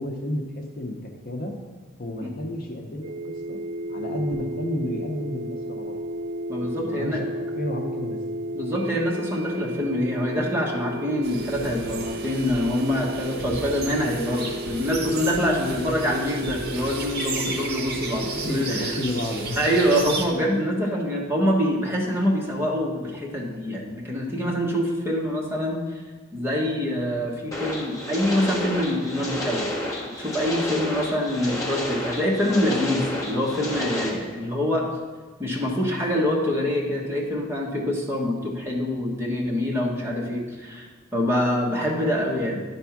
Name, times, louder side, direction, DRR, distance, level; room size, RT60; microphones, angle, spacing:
voice 1, 0.0-1.5 2.0-3.6 3.9-6.0 6.6-7.3 7.5-8.2 15.7-15.8 18.3-19.6, left 1 dB, 45° left, 2 dB, 0.8 m, -31 dB
sound 1, 3.0-19.0, right 1 dB, 80° right, 0.4 m, -33 dB
voice 2, 6.5-7.2 8.5-18.9 19.6-25.8 26.3-29.7 30.2-34.9 35.4-42.6, equal, 10° right, -2 dB, 1.1 m, -25 dB
sound 2, 11.2-20.2, right 3 dB, 55° right, 1.0 m, -34 dB
sound 3, 27.5-34.1, left 1 dB, 15° left, 1.1 m, -30 dB
10.5 x 3.5 x 5.8 m, 1.4 s
head